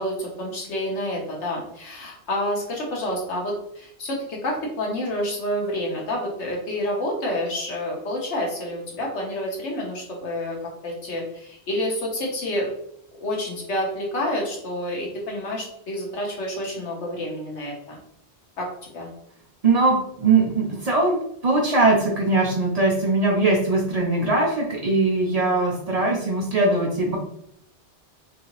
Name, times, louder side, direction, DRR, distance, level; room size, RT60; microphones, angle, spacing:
voice 1, 0.0-10.6 10.8-12.7 13.2-18.0 18.6-19.1, left 1 dB, 90° left, -2 dB, 1.3 m, -28 dB
voice 2, 19.6-27.2, right 3 dB, 45° right, -1 dB, 0.5 m, -21 dB
3.1 x 2.8 x 2.9 m, 0.73 s
omnidirectional pair, 1.1 m